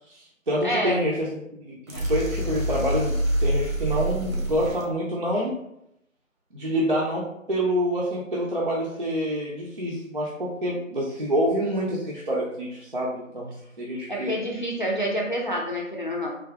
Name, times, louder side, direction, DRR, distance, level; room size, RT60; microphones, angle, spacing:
voice 1, 0.1-5.6 6.5-14.3, equal, 45° right, -5 dB, 0.6 m, -27 dB
voice 2, 0.6-1.0 14.1-16.3, equal, 40° left, -2 dB, 0.5 m, -27 dB
sound 1, 1.9-4.8, right 1 dB, 90° right, 1.3 m, -26 dB
3.5 x 2.7 x 3.3 m, 0.78 s
figure-of-eight pair, 160°, 40 cm